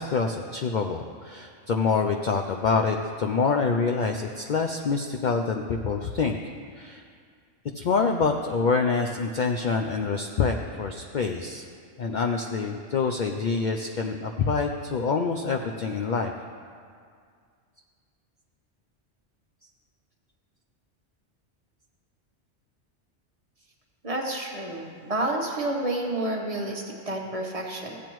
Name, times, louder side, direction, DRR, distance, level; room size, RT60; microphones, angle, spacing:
voice 1, 0.0-6.4 6.8-7.0 7.7-11.6 12.0-16.3, left 5 dB, 60° left, 3 dB, 0.5 m, -26 dB
voice 2, 24.0-28.0, right 1 dB, 30° right, 0 dB, 1.0 m, -30 dB
15.5 x 8.5 x 3.0 m, 2.1 s
omnidirectional pair, 1.2 m